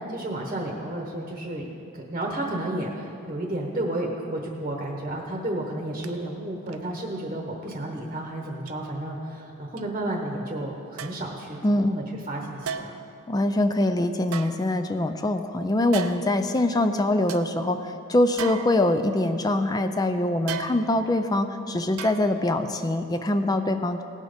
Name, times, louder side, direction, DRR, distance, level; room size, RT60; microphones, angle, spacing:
voice 1, 0.1-12.9, right 1 dB, 30° right, 0 dB, 1.0 m, -32 dB
sound 1, 6.0-6.1 6.7-6.9 7.7-7.8 8.7-8.8 9.8-9.9 11.0-11.3 12.6-13.1 14.2-15.1 15.9-16.4 16.9-17.0 17.3-17.5 18.4-19.2 20.5-21.1 22.0-22.6 22.9-23.0, right 7 dB, 80° right, 0.6 m, -36 dB
voice 2, 13.3-24.0, left 1 dB, 15° left, 9 dB, 0.3 m, -24 dB
18.0 x 6.3 x 5.1 m, 2.6 s
head